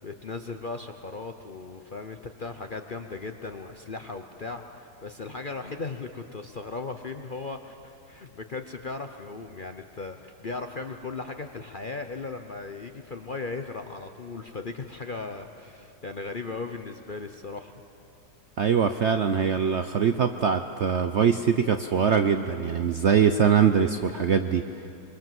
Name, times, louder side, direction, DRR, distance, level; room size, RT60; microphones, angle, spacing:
voice 1, 0.0-17.7, left 3 dB, 45° left, 6 dB, 0.7 m, -37 dB
voice 2, 18.6-24.6, right 7 dB, 60° right, 8 dB, 0.7 m, -22 dB
25.0 x 22.5 x 7.7 m, 2.7 s
omnidirectional pair, 1.8 m